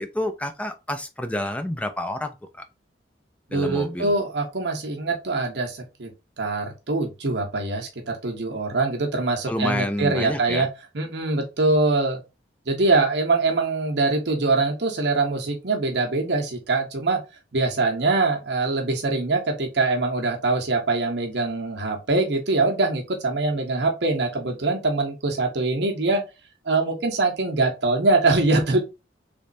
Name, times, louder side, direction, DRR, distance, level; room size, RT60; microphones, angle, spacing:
voice 1, 0.0-2.6 3.5-4.1 9.5-10.7, left 1 dB, 5° left, 0.4 m, -29 dB
voice 2, 3.5-6.1 6.4-10.7 10.9-12.2 12.7-17.2 17.5-26.2 26.6-28.8, right 3 dB, 65° right, 0.9 m, -23 dB
3.3 x 3.0 x 2.6 m
head